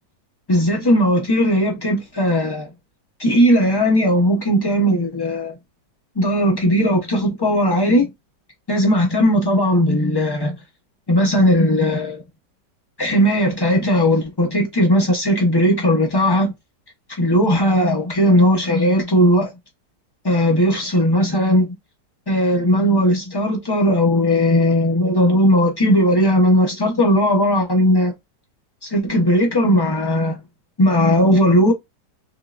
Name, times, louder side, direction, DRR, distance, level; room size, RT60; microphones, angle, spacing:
voice 1, 0.5-2.7 3.2-5.6 6.2-8.1 8.7-10.6 11.1-12.2 13.0-16.5 17.2-19.5 20.2-21.8 22.3-28.1 28.8-30.4 30.8-31.7, equal, 40° left, 0.3 m, -17 dB
3.6 x 3.1 x 2.5 m
omnidirectional pair, 1.9 m